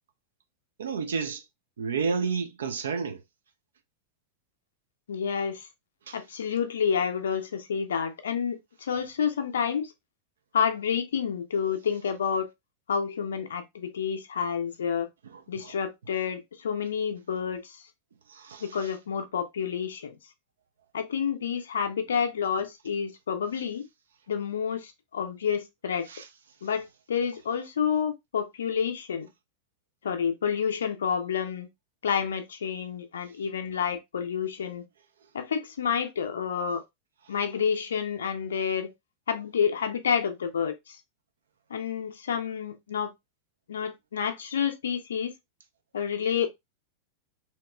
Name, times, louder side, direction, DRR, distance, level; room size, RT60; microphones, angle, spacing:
voice 1, 0.8-1.4 1.8-3.2 6.1-6.2 15.3-15.7 18.3-18.6 26.1-26.3, right 5 dB, 65° right, 0.5 m, -31 dB
voice 2, 5.1-5.7 6.1-9.9 10.5-12.5 12.9-15.1 15.5-17.8 18.6-20.2 20.9-23.8 24.3-26.1 26.6-29.3 30.0-31.7 32.0-34.8 35.3-36.8 37.3-38.9 39.3-41.0 41.7-43.1 43.7-45.3 45.9-46.5, left 7 dB, 65° left, 0.6 m, -29 dB
2.9 x 2.9 x 2.2 m
figure-of-eight pair, 90°, 0 cm